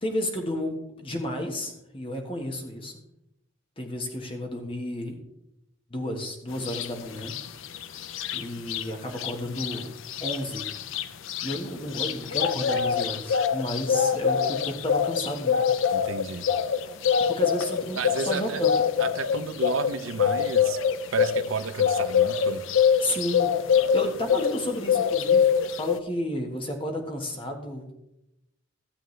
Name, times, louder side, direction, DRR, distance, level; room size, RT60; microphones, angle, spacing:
voice 1, 0.0-2.9 3.8-5.2 5.9-7.3 8.3-9.9 10.2-10.7 11.4-15.9 17.3-18.7 23.0-27.9, left 1 dB, 25° left, 3 dB, 1.3 m, -32 dB
sound 1, 6.7-6.9 7.2-8.8 9.2-9.3 9.6-24.6 24.9-26.0, left 7 dB, 75° left, 0.5 m, -24 dB
voice 2, 15.9-16.5 17.9-18.6 19.0-20.8 21.1-22.6, right 5 dB, 85° right, 13 dB, 0.6 m, -32 dB
13.0 x 7.6 x 3.2 m, 0.87 s
head